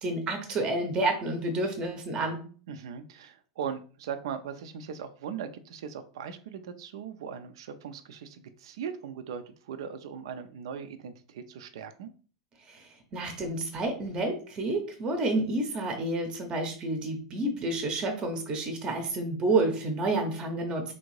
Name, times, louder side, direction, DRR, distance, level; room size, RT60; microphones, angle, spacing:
voice 1, 0.0-2.4 12.7-20.9, right 2 dB, 30° right, 5 dB, 0.7 m, -29 dB
voice 2, 2.7-12.1, right 7 dB, 70° right, 10 dB, 0.4 m, -39 dB
3.4 x 2.6 x 3.1 m, 0.41 s
hypercardioid pair, 100°, 3 cm